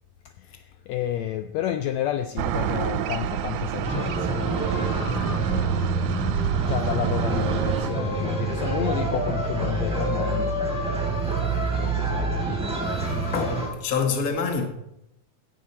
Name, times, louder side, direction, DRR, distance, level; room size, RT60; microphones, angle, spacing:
voice 1, 0.3-4.6 4.9-5.7 6.6-10.6 11.6-12.3, left 11 dB, 80° left, 1.6 m, -31 dB
sound 1, 2.4-7.9, right 11 dB, 80° right, 2.0 m, -28 dB
sound 2, 3.8-13.7, right 3 dB, ahead, 2.9 m, -26 dB
voice 2, 12.9-14.7, left 5 dB, 40° left, 1.3 m, -27 dB
16.5 x 7.5 x 4.3 m
omnidirectional pair, 3.5 m